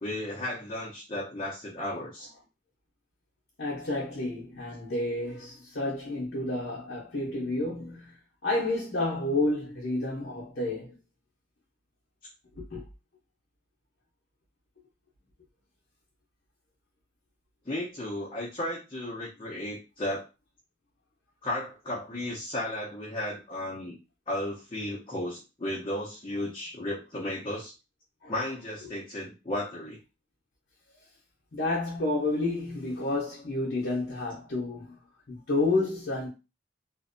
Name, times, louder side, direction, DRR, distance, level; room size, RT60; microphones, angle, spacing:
voice 1, 0.0-2.3 17.7-20.3 21.4-23.9 24.3-27.7 28.3-30.0, left 1 dB, 25° left, 0.6 m, -34 dB
voice 2, 3.6-8.1 8.4-10.9 12.6-12.8 28.2-28.3 31.5-35.0 35.3-36.3, left 2 dB, 60° left, 0.7 m, -30 dB
2.5 x 2.1 x 2.5 m
head